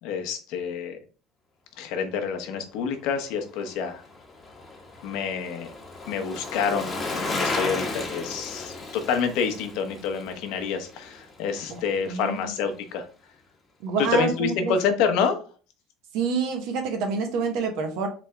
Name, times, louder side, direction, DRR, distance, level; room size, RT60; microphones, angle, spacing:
voice 1, 0.0-1.0 1.8-4.0 5.0-5.7 6.1-13.1 14.0-15.4, left 6 dB, 65° left, 6 dB, 0.9 m, -28 dB
Bicycle, 3.5-11.9 12.2-12.3, left 3 dB, 20° left, 1.0 m, -34 dB
voice 2, 11.7-12.4 13.8-14.7 16.1-18.1, right 5 dB, 65° right, 5 dB, 1.0 m, -27 dB
4.0 x 3.5 x 3.3 m, 0.38 s
cardioid pair, 145°, 0 cm